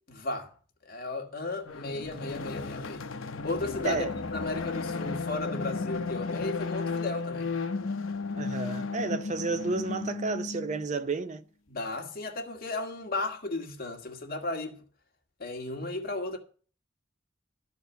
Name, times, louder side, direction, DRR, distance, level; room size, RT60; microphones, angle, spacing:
voice 1, 0.1-0.5 0.8-3.0 3.4-4.0 4.3-7.5 11.7-14.8 15.4-16.4, left 2 dB, 50° left, 1.8 m, -34 dB
sound 1, 1.7-10.9, left 4 dB, 80° left, 0.8 m, -34 dB
voice 2, 8.4-11.4, right 3 dB, 35° right, 0.5 m, -31 dB
13.0 x 4.6 x 8.0 m
head